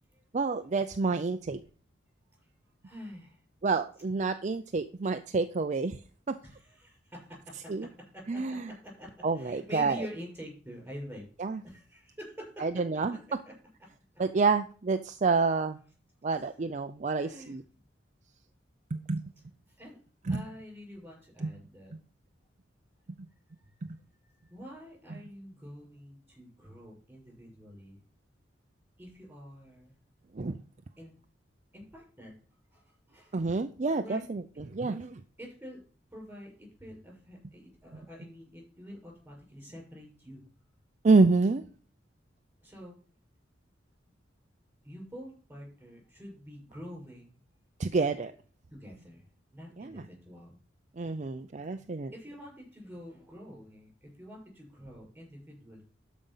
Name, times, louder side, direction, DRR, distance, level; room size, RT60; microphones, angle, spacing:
voice 1, 0.3-1.6 3.6-6.0 6.3-6.4 7.7-7.9 8.3-8.7 9.2-10.0 11.4-11.6 12.6-13.2 14.2-15.8 16.2-17.6 18.9-19.2 20.3-20.4 21.4-21.5 23.8-24.0 30.3-30.6 33.3-34.4 34.7-35.2 41.0-41.6 47.8-48.3 49.8-50.0 51.0-52.1, right 4 dB, 40° right, 8 dB, 0.5 m, -28 dB
voice 2, 2.4-3.4 6.4-12.8 13.1-13.2 13.4-13.6 17.1-17.6 19.7-20.0 20.3-21.9 23.5-28.0 29.0-30.0 31.0-31.1 31.7-32.4 32.7-33.5 34.0-34.3 34.5-34.7 35.4-35.8 36.1-40.4 42.6-43.0 44.8-47.4 48.7-49.3 49.5-50.6 51.7-55.8, equal, 10° right, -1 dB, 6.3 m, -47 dB
12.5 x 5.2 x 5.6 m, 0.41 s
head